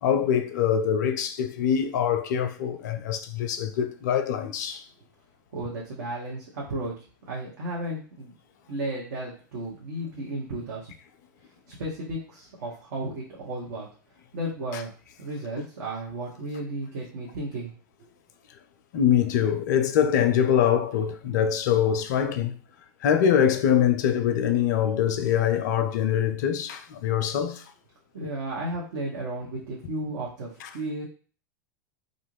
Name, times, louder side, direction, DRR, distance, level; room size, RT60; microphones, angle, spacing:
voice 1, 0.0-4.9 14.7-14.8 18.9-22.5 23.0-27.7 30.6-30.7, left 9 dB, 60° left, 0.4 m, -24 dB
voice 2, 5.5-6.9 7.3-8.3 8.7-10.9 11.7-13.9 14.3-14.9 15.2-17.7 28.1-31.0, right 1 dB, 65° right, 0.9 m, -34 dB
2.5 x 2.4 x 3.1 m
figure-of-eight pair, 85°, 10 cm